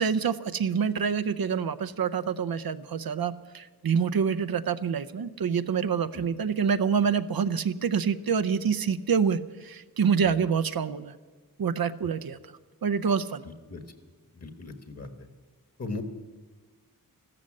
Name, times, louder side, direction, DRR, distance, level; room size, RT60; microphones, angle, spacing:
voice 1, 0.0-11.1 11.6-12.4 12.8-13.4, right 6 dB, 80° right, 13 dB, 0.6 m, -26 dB
voice 2, 13.4-13.8 14.3-15.3 15.8-16.0, left 3 dB, 45° left, 8 dB, 1.5 m, -39 dB
14.0 x 13.0 x 7.6 m, 1.4 s
wide cardioid pair, 100°, 36 cm